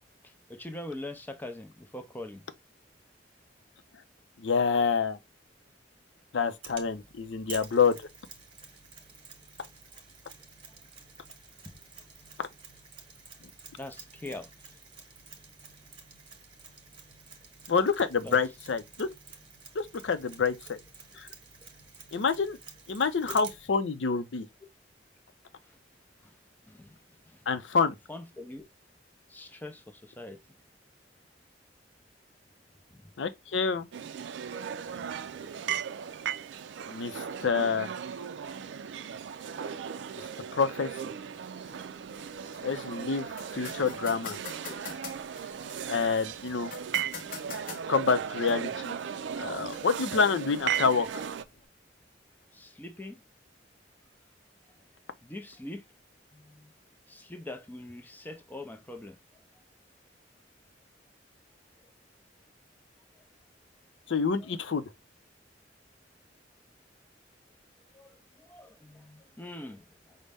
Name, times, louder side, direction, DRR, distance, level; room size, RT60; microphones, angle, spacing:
voice 1, 0.2-2.4 13.8-14.5 18.2-18.4 25.6-25.8 26.2-26.4 26.6-27.0 27.3-27.4 28.1-28.6 29.3-30.4 32.9-33.1 35.0-35.2 44.4-44.8 52.5-53.2 55.2-55.8 56.3-56.7 57.1-59.2 67.9-70.2, left 1 dB, 10° left, 0.5 m, -43 dB
voice 2, 4.4-5.2 6.3-8.0 17.7-19.1 19.7-20.8 21.2-21.3 22.1-22.6 22.9-24.5 27.5-28.0 33.2-33.9 36.9-37.9 40.2-40.3 40.5-41.0 42.6-44.4 45.9-46.7 47.9-49.0 49.3-51.2 64.1-64.8, left 5 dB, 85° left, 0.5 m, -27 dB
Mechanisms, 6.6-23.7, right 5 dB, 30° right, 1.1 m, -50 dB
sound 1, 33.9-51.4, right 8 dB, 80° right, 0.4 m, -37 dB
sound 2, 41.6-51.7, left 5 dB, 50° left, 0.7 m, -47 dB
5.2 x 2.1 x 3.4 m
head